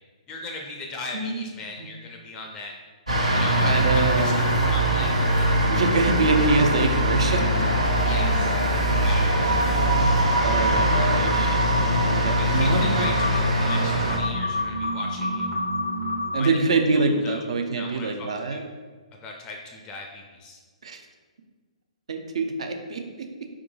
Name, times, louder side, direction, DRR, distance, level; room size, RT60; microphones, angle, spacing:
voice 1, 0.3-2.7 3.3-5.5 5.7-5.9 8.0-8.5 9.0-9.6 12.5-15.5 16.4-16.5 16.9-17.4 17.8-18.7 19.2-20.6, left 3 dB, 20° left, 2 dB, 0.4 m, -38 dB
voice 2, 1.1-1.5 1.8-1.9 3.6-4.4 5.7-7.6 10.4-13.1 16.3-18.6 20.8-21.0 22.1-23.5, right 3 dB, 60° right, 5 dB, 0.5 m, -25 dB
sound 1, 3.1-14.2, equal, 80° right, 1.1 m, -22 dB
sound 2, 9.3-16.4, right 1 dB, 45° right, 0.9 m, -28 dB
4.6 x 3.6 x 2.3 m, 1.4 s
figure-of-eight pair, 125°, 4 cm